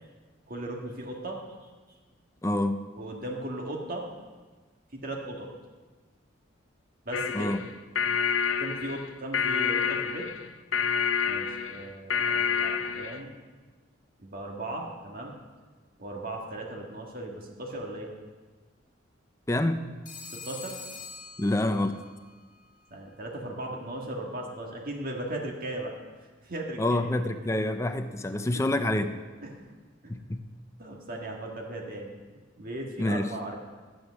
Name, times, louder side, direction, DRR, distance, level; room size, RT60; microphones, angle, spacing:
voice 1, 0.5-1.4 3.0-4.1 4.9-5.5 7.0-7.5 8.6-10.3 11.2-13.3 14.2-15.4 16.0-18.1 20.3-20.8 22.9-25.9 26.4-27.1 28.1-28.3 29.4-29.7 30.0-30.2 30.8-33.6, right 1 dB, 45° right, 0 dB, 1.7 m, -37 dB
voice 2, 2.4-2.9 7.3-7.7 19.5-19.8 21.4-22.0 26.8-29.2 30.1-30.4 33.0-33.3, left 1 dB, 15° left, 9 dB, 0.5 m, -27 dB
sound 1, 7.1-13.2, left 7 dB, 80° left, 0.6 m, -28 dB
Telephone, 20.1-22.1, left 4 dB, 45° left, 1.6 m, -43 dB
14.0 x 8.0 x 6.2 m, 1.4 s
head